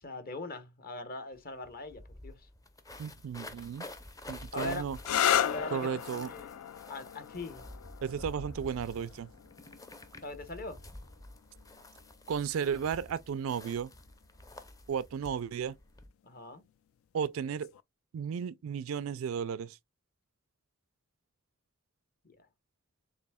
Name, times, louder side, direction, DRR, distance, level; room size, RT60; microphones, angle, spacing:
voice 1, 0.0-2.5 4.5-4.8 5.4-6.6 6.9-7.6 10.2-10.8 16.2-16.6 22.2-22.4, left 2 dB, 45° left, 0.9 m, -41 dB
sound 1, 1.3-1.4 1.6-16.1, left 1 dB, 15° left, 0.5 m, -49 dB
voice 2, 3.0-3.9 4.3-5.0 5.7-6.3 8.0-9.3 12.3-13.9 14.9-15.8 17.1-17.7 18.1-19.8, right 7 dB, 70° right, 0.3 m, -34 dB
sound 2, 5.0-12.4 13.4-13.9 17.5-17.8, left 10 dB, 80° left, 0.4 m, -35 dB
6.7 x 2.7 x 2.2 m
head